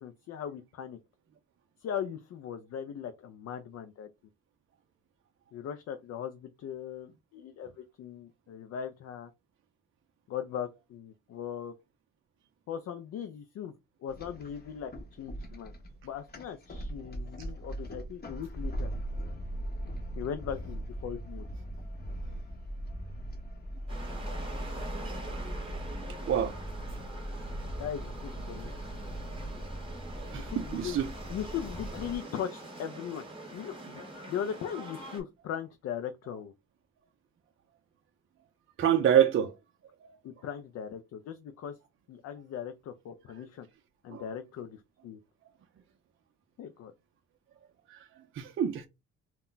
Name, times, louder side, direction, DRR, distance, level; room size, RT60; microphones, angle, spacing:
voice 1, 0.0-1.0 1.8-4.1 5.5-9.3 10.3-11.7 12.7-13.7 14.0-15.7 16.0-18.9 20.2-21.5 27.8-28.7 30.3-31.0 31.3-33.2 33.5-34.0 34.3-36.5 40.2-41.8 42.1-43.7 44.0-45.2 46.6-46.9, left 9 dB, 60° left, 0.4 m, -39 dB
sound 1, 14.1-32.2, right 1 dB, 30° left, 0.8 m, -39 dB
sound 2, 23.9-35.2, right 1 dB, 20° right, 1.1 m, -44 dB
voice 2, 30.7-31.1 38.8-39.5 44.1-44.2 47.9-48.0 48.4-48.9, right 10 dB, 45° right, 0.4 m, -25 dB
2.2 x 2.1 x 3.7 m
cardioid pair, 90°, 30 cm